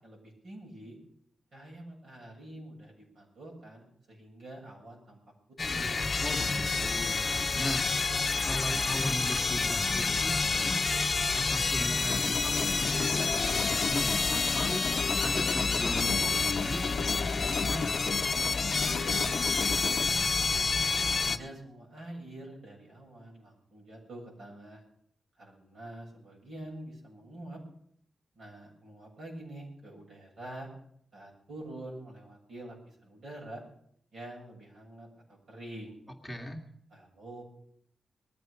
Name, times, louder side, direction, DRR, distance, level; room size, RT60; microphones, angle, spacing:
voice 1, 0.0-1.0 1.5-5.2 5.6-6.0 19.2-20.7 21.2-24.8 25.4-27.6 28.3-30.7 31.1-33.6 34.1-36.0 36.9-37.4, right 1 dB, 60° right, -2 dB, 7.8 m, -46 dB
sound 1, 5.6-21.4, left 4 dB, 30° left, 0.9 m, -29 dB
voice 2, 6.2-7.9 8.4-10.8 11.3-14.9 15.2-18.0 36.2-36.6, equal, ahead, 0 dB, 2.1 m, -38 dB
Human voice / Acoustic guitar, 12.1-20.1, left 7 dB, 70° left, 0.6 m, -36 dB
20.5 x 14.0 x 5.1 m, 0.65 s
wide cardioid pair, 170°, 0 cm